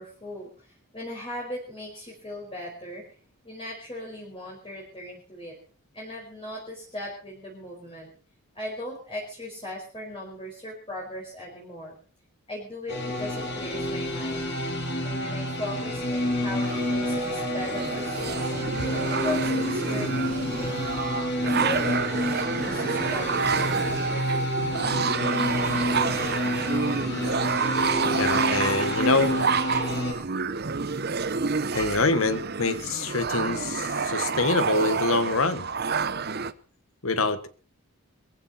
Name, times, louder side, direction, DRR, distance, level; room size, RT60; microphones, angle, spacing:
voice 1, 0.0-3.0 3.4-5.5 5.9-8.1 8.5-11.9 12.5-14.5 15.0-18.5 18.9-21.0 21.4-24.1, left 1 dB, 25° left, -3 dB, 5.1 m, -38 dB
sound 1, 12.9-30.1, left 1 dB, 50° left, 7.5 m, -29 dB
sound 2, 16.6-36.5, right 5 dB, 45° right, 0.8 m, -29 dB
voice 2, 28.2-29.4 31.7-35.7 37.0-37.5, left 3 dB, 70° left, 12 dB, 1.5 m, -25 dB
21.5 x 15.5 x 4.4 m, 0.40 s
head